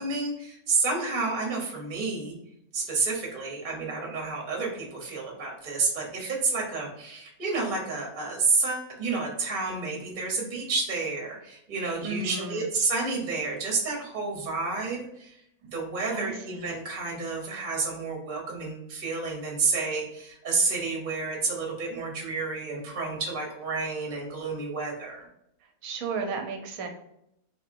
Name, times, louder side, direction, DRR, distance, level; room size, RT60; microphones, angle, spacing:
voice 1, 0.0-2.3 2.7-25.3, right 3 dB, 40° right, -1 dB, 0.8 m, -30 dB
voice 2, 12.0-12.6 16.1-16.7 25.8-26.9, right 4 dB, 70° right, 4 dB, 1.0 m, -34 dB
3.8 x 2.8 x 2.5 m, 0.78 s
omnidirectional pair, 1.6 m